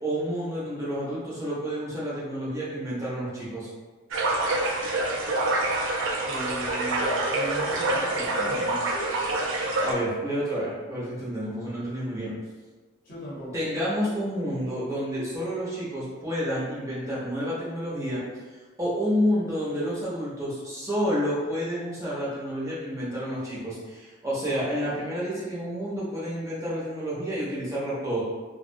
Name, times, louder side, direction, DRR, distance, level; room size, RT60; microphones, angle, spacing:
voice 1, 0.0-3.7 9.8-12.3 13.5-18.2 18.8-28.2, equal, 15° right, -8 dB, 0.6 m, -29 dB
sound 1, 4.1-9.9, right 2 dB, 65° right, 0.4 m, -26 dB
voice 2, 6.2-8.9 13.0-13.6, right 1 dB, 45° left, -8 dB, 0.8 m, -37 dB
2.3 x 2.1 x 2.6 m, 1.4 s
head